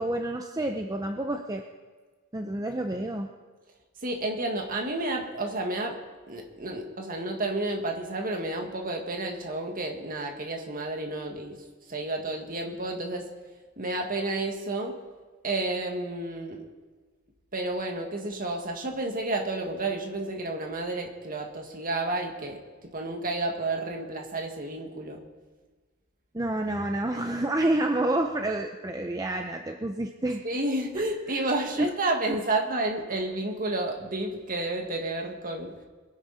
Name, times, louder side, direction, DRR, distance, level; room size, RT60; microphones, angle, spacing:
voice 1, 0.0-1.7 2.3-3.3 26.3-30.4 31.0-31.1 31.8-31.9, right 1 dB, 15° right, 4 dB, 0.6 m, -28 dB
voice 2, 4.0-6.0 6.3-11.6 11.9-13.3 13.8-14.9 15.4-16.6 17.5-22.6 22.9-25.2 30.4-35.7, right 2 dB, 40° right, 2 dB, 1.9 m, -31 dB
22.0 x 10.5 x 4.2 m, 1.4 s
head